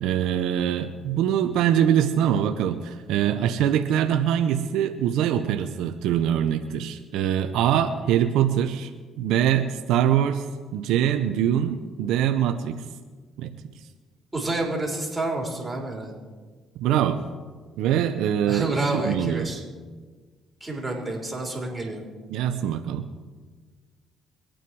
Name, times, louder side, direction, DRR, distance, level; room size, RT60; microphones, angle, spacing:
voice 1, 0.0-8.9 9.2-10.4 10.7-12.8 13.4-13.5 16.8-17.2 17.8-19.5 22.3-23.1, right 10 dB, 80° right, 7 dB, 0.8 m, -23 dB
voice 2, 14.3-16.1 18.5-19.6 20.6-22.0, right 2 dB, 15° right, -1 dB, 4.6 m, -28 dB
23.5 x 9.0 x 4.7 m, 1.4 s
cardioid pair, 80°, 0 cm